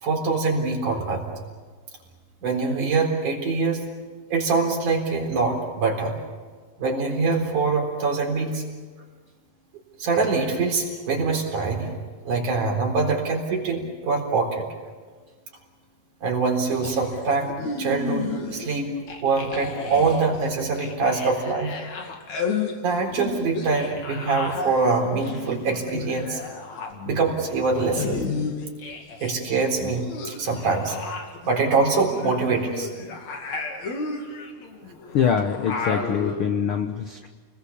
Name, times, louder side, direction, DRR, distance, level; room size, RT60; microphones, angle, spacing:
voice 1, 0.0-1.3 2.4-3.8 4.3-6.2 6.8-8.6 10.0-11.9 12.3-14.7 16.2-18.9 19.2-21.7 22.8-26.4 27.0-28.2 29.2-31.0 31.5-33.1, right 4 dB, 60° right, 1 dB, 5.3 m, -24 dB
sound 1, 16.8-18.8 19.1-29.3 29.6-36.5, left 4 dB, 55° left, 3.5 m, -33 dB
voice 2, 35.1-37.3, left 7 dB, 85° left, 6 dB, 1.1 m, -24 dB
29.5 x 20.5 x 7.1 m, 1.4 s
omnidirectional pair, 4.0 m